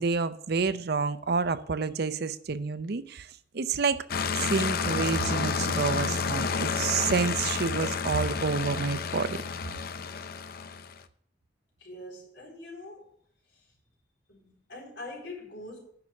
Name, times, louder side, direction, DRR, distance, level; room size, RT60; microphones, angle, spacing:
voice 1, 0.0-3.3 3.5-4.0 4.4-9.4, right 4 dB, 60° right, 0.6 m, -29 dB
sound 1, 4.1-11.0, left 5 dB, 55° left, 0.6 m, -30 dB
voice 2, 11.8-13.1 14.3-15.8, left 2 dB, 85° left, 4.0 m, -43 dB
9.6 x 6.1 x 6.2 m
head